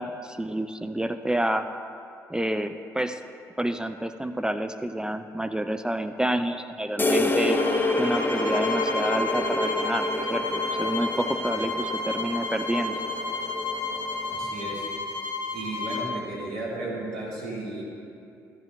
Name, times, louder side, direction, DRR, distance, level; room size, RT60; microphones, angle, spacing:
voice 1, 0.0-1.7 2.3-3.2 3.6-7.6 8.0-13.0, right 1 dB, 10° right, 9 dB, 0.4 m, -29 dB
sound 1, 7.0-14.5, left 2 dB, 20° left, 0.8 m, -28 dB
sound 2, 7.5-16.1, left 3 dB, 55° left, 1.5 m, -31 dB
voice 2, 14.3-14.8 15.5-17.8, right 2 dB, 75° right, -6 dB, 2.2 m, -34 dB
13.5 x 7.3 x 3.3 m, 2.5 s
figure-of-eight pair, 45°, 9 cm